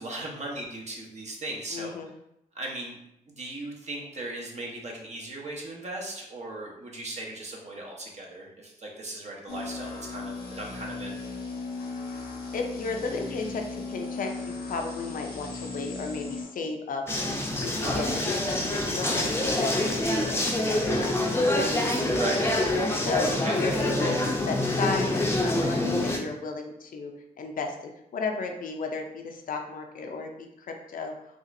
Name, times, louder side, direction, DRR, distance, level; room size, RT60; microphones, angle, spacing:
voice 1, 0.0-1.9 2.5-3.0 3.3-11.2 17.8-18.0 22.1-22.4 23.4-23.6, right 1 dB, 45° right, -1 dB, 1.0 m, -37 dB
voice 2, 1.7-2.1 12.5-17.1 17.5-21.6 23.0-27.1 27.4-31.1, left 4 dB, 60° left, 3 dB, 0.5 m, -34 dB
sound 1, 9.5-16.4, left 3 dB, 80° left, 0.9 m, -37 dB
sound 2, 17.1-26.2, left 1 dB, 15° left, 0.6 m, -26 dB
4.0 x 2.4 x 2.6 m, 0.81 s
cardioid pair, 65°, 16 cm